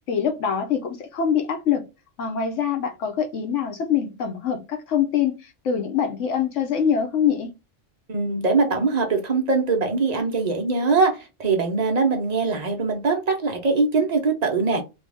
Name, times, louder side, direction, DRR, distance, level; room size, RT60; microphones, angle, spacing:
voice 1, 0.1-1.8 2.2-7.5, left 8 dB, 75° left, 1.1 m, -24 dB
voice 2, 8.1-14.8, right 4 dB, 40° right, 0.8 m, -22 dB
3.4 x 2.4 x 3.3 m
omnidirectional pair, 1.3 m